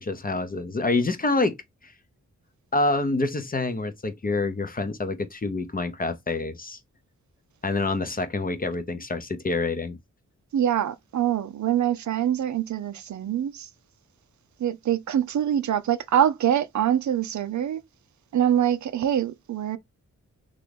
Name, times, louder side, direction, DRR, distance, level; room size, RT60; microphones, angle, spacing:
voice 1, 0.0-1.6 1.8-1.9 2.7-6.8 7.6-10.0, left 3 dB, 30° left, 0.6 m, -27 dB
voice 2, 10.5-13.7 14.6-17.8 18.3-19.8, right 10 dB, 65° right, 0.5 m, -24 dB
3.0 x 2.4 x 3.3 m
cardioid pair, 55°, 32 cm